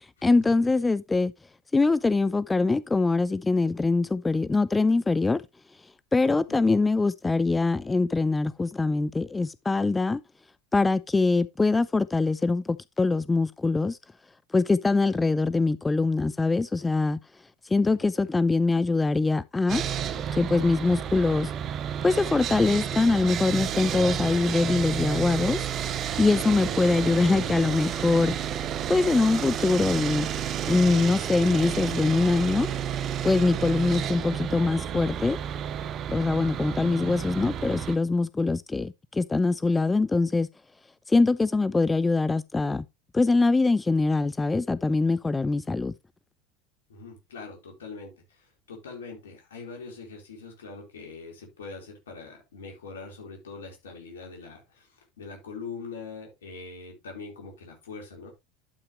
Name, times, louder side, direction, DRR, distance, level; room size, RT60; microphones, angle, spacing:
voice 1, 0.2-1.3 1.7-5.4 6.1-10.2 10.7-14.0 14.5-17.2 17.6-19.8 20.3-21.5 22.0-28.3 28.9-30.3 30.7-32.7 33.2-35.4 36.1-40.5 41.1-42.9 43.1-45.9, left 3 dB, 15° left, 0.4 m, -23 dB
voice 2, 6.5-6.8 17.8-18.3 46.9-58.3, left 4 dB, 75° left, 4.0 m, -43 dB
Sawing, 19.7-38.0, right 9 dB, 40° right, 0.9 m, -31 dB
11.5 x 5.8 x 3.1 m
figure-of-eight pair, 75°, 0 cm